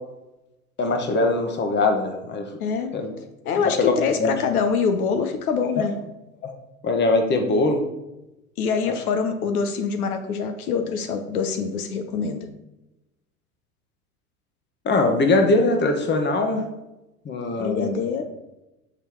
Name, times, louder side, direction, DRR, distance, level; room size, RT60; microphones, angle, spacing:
voice 1, 0.8-2.5 2.9-3.1 3.5-3.9 4.2-4.3 6.4-6.5 6.8-7.8 14.8-16.6 17.2-17.9, left 2 dB, 25° left, 4 dB, 1.0 m, -21 dB
voice 2, 2.6-2.9 3.4-5.9 8.6-12.5 17.6-18.3, left 5 dB, 75° left, 6 dB, 0.8 m, -25 dB
7.1 x 3.4 x 4.5 m, 0.96 s
hypercardioid pair, 85°, 45 cm